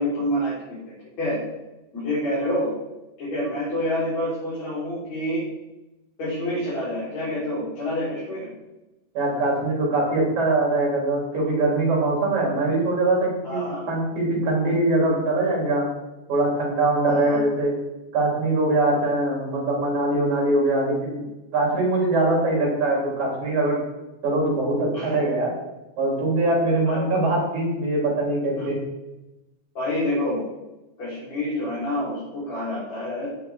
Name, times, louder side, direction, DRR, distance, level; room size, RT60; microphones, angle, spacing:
voice 1, 0.0-1.4 1.9-2.7 3.2-5.4 6.2-8.5 13.4-13.8 17.1-17.4 24.9-25.2 26.9-27.0 28.6-28.7 29.8-30.4 31.0-33.3, left 1 dB, 65° left, -9 dB, 5.2 m, -27 dB
voice 2, 9.2-15.9 16.3-17.7 18.1-21.2 21.5-23.8 24.2-25.5 26.0-28.8, right 2 dB, 75° right, -3 dB, 5.4 m, -22 dB
14.0 x 9.9 x 3.6 m, 0.99 s
omnidirectional pair, 3.4 m